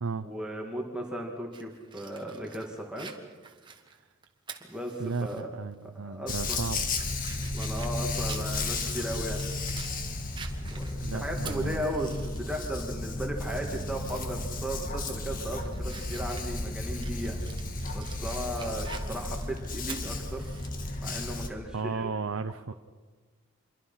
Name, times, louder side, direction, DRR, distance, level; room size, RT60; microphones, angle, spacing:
voice 1, 0.2-3.1 4.7-5.5 5.8-6.6 7.5-9.4 10.7-17.4 17.9-20.5 21.0-22.1, right 1 dB, 5° right, 0 dB, 2.3 m, -36 dB
Fire, 1.5-5.4 5.8-5.9 6.4-10.0 10.3-12.4 12.8-12.9 14.4-14.6 15.1-20.7, right 6 dB, 20° right, 1.5 m, -47 dB
voice 2, 5.0-6.9 11.0-11.8 21.7-22.7, right 4 dB, 70° right, 9 dB, 0.7 m, -34 dB
Dog, 6.3-21.5, left 2 dB, 40° left, 1.8 m, -33 dB
26.5 x 23.0 x 5.8 m, 1.4 s
head